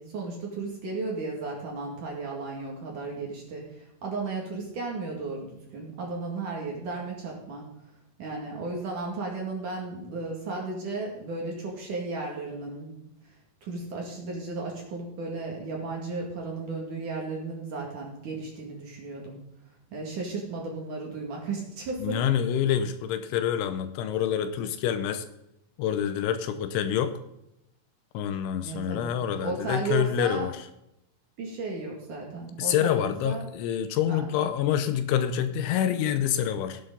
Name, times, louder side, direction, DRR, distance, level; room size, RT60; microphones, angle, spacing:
voice 1, 0.0-7.6 8.2-13.0 13.3-13.4 13.6-19.4 19.9-22.3 28.6-29.1 29.4-30.5 31.4-33.5 34.1-34.3, right 3 dB, 50° right, -1 dB, 3.0 m, -34 dB
voice 2, 22.0-25.2 25.8-27.2 28.1-30.5 32.6-36.8, left 9 dB, 80° left, 10 dB, 3.0 m, -27 dB
17.0 x 8.6 x 3.9 m, 0.82 s
omnidirectional pair, 5.7 m